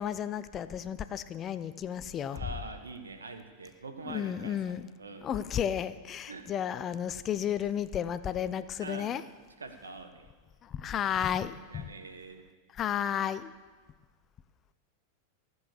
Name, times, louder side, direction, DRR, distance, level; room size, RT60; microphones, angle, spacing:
voice 1, 0.0-2.4 4.0-4.9 5.2-9.2 10.6-11.9 12.7-13.5, left 9 dB, 30° left, 14 dB, 0.5 m, -33 dB
voice 2, 2.3-4.7 5.0-5.3 6.3-6.5 8.8-9.1 9.6-10.3 11.7-12.4, right 3 dB, 75° right, 6 dB, 1.4 m, -44 dB
15.0 x 8.0 x 6.8 m, 1.4 s
figure-of-eight pair, 90°, 0 cm